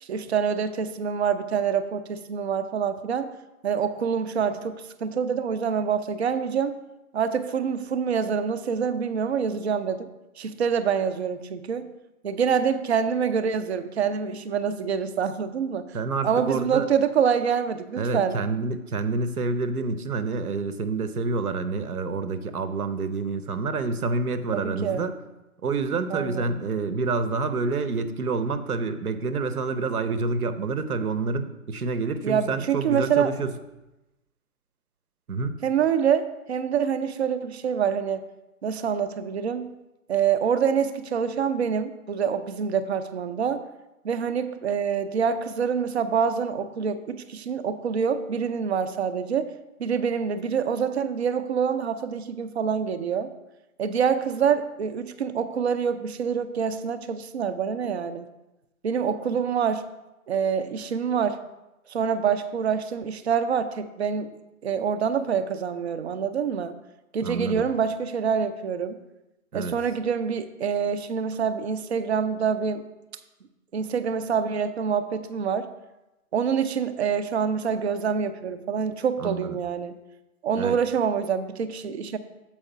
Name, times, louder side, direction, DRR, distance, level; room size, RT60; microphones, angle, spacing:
voice 1, 0.0-3.3 3.6-6.8 7.1-10.1 10.4-11.9 12.2-15.9 16.2-18.4 24.5-25.0 26.1-26.6 32.2-33.3 35.6-38.2 38.6-39.7 40.1-43.6 44.0-49.5 49.8-53.3 53.8-58.3 58.8-59.9 60.3-61.4 61.9-64.3 64.6-66.8 67.1-69.0 69.5-72.9 73.7-75.7 76.3-80.0 80.4-82.2, right 7 dB, 50° right, 10 dB, 0.5 m, -26 dB
voice 2, 15.9-16.9 18.0-25.2 25.6-33.5 35.3-35.6 67.2-67.6 69.5-69.7 79.2-79.6 80.6-80.8, right 4 dB, 85° right, 11 dB, 0.9 m, -28 dB
7.3 x 4.8 x 5.4 m, 0.99 s
hypercardioid pair, 155°, 43 cm